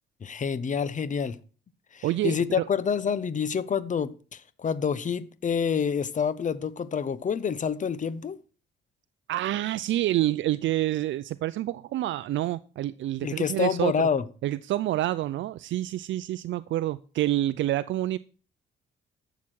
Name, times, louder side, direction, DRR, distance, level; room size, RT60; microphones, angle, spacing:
voice 1, 0.2-1.4 1.9-8.4 13.2-14.2, left 6 dB, 40° left, 0.9 m, -27 dB
voice 2, 2.0-2.7 9.3-14.1 14.4-18.2, right 14 dB, 70° right, 0.5 m, -28 dB
12.0 x 7.2 x 6.3 m
cardioid pair, 90°, 20 cm